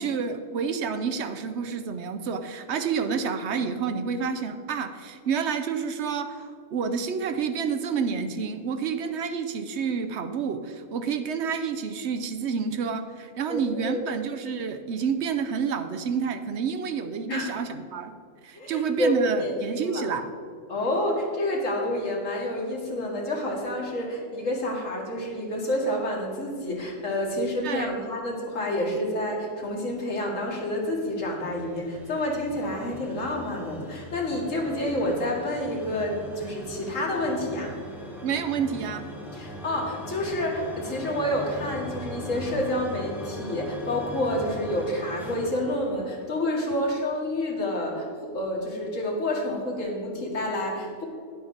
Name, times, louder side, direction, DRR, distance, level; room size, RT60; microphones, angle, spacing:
voice 1, 0.0-18.1 18.4-20.3 27.6-28.0 38.2-39.1 46.7-46.8, right 6 dB, 65° right, 8 dB, 0.9 m, -29 dB
voice 2, 13.5-14.0 17.3-17.5 18.6-20.1 20.7-37.7 39.3-51.1, left 1 dB, 85° left, -1 dB, 2.1 m, -29 dB
sound 1, 30.5-46.6, left 1 dB, ahead, 1.1 m, -40 dB
10.5 x 7.9 x 3.9 m, 2.2 s
omnidirectional pair, 1.3 m